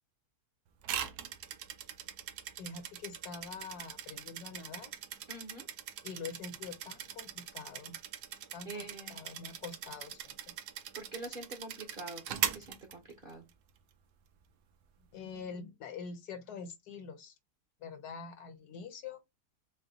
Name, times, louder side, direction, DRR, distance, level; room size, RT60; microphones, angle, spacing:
sound 1, 0.8-13.5, right 10 dB, 75° right, 1.1 m, -41 dB
voice 1, 2.6-4.9 6.0-8.0 8.5-10.5 15.1-17.4 17.8-19.2, left 5 dB, 70° left, 1.3 m, -45 dB
voice 2, 5.3-5.7 8.7-9.2 10.9-13.5, right 2 dB, 45° right, 0.7 m, -45 dB
4.3 x 2.2 x 4.0 m
omnidirectional pair, 1.8 m